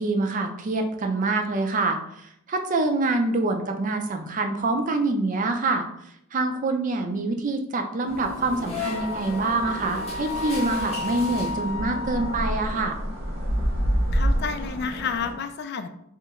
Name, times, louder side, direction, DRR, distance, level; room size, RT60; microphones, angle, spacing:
voice 1, 0.0-2.0 2.5-5.9 6.3-13.0, right 2 dB, 40° right, 5 dB, 0.4 m, -25 dB
sound 1, 8.1-12.0, left 3 dB, 30° left, 0.9 m, -37 dB
sound 2, 8.1-15.3, equal, 80° right, 1.3 m, -29 dB
Wind instrument woodwind instrument, 8.8-12.7, left 3 dB, 65° left, 0.7 m, -33 dB
voice 2, 14.1-15.9, left 6 dB, 50° left, 9 dB, 0.3 m, -30 dB
3.2 x 2.9 x 3.5 m, 0.76 s
head